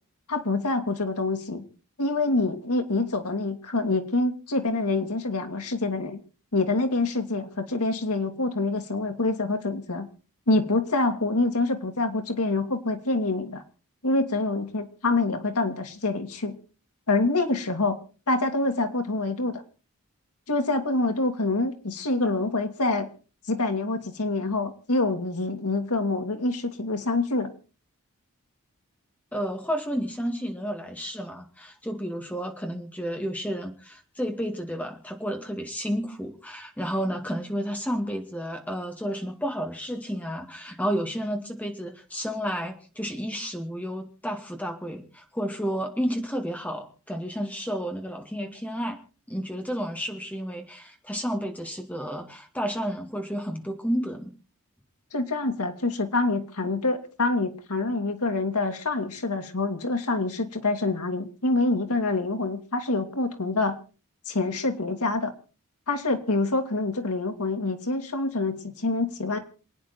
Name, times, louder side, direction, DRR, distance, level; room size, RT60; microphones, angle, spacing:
voice 1, 0.3-1.6 2.0-6.2 6.5-10.1 10.5-13.6 14.0-16.6 17.1-18.0 18.3-19.6 20.5-23.1 23.5-27.5 55.1-63.8 64.3-65.3 65.9-69.4, left 2 dB, 90° left, 5 dB, 2.3 m, -26 dB
voice 2, 29.3-49.0 49.3-54.3, equal, 5° left, 4 dB, 2.2 m, -31 dB
28.0 x 9.5 x 4.4 m, 0.36 s
head